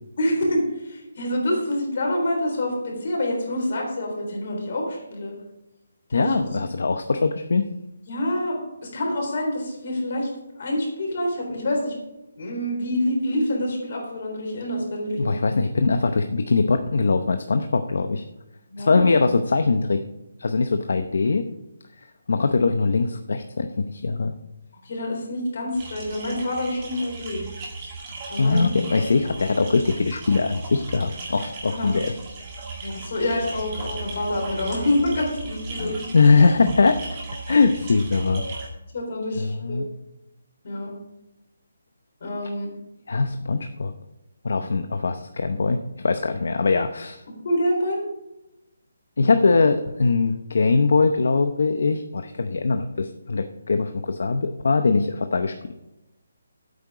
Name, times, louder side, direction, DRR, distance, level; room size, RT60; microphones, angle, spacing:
voice 1, 0.2-5.4 6.1-6.6 8.1-10.3 10.6-11.9 12.4-15.4 18.7-19.0 24.8-27.4 28.3-28.8 31.7-31.9 32.8-36.4 38.9-39.8 40.6-40.9 42.2-42.7 47.4-48.0, left 1 dB, 40° left, 0 dB, 3.8 m, -26 dB
voice 2, 6.1-7.6 15.2-18.2 18.8-20.0 20.4-21.4 22.3-24.3 28.4-32.1 35.8-37.0 37.5-38.4 39.4-39.9 43.1-43.9 44.4-47.2 49.2-55.7, left 4 dB, 60° left, 8 dB, 0.7 m, -21 dB
sound 1, 25.7-38.7, right 3 dB, 20° right, 1.9 m, -36 dB
11.5 x 8.7 x 4.8 m, 0.94 s
hypercardioid pair, 180°, 0 cm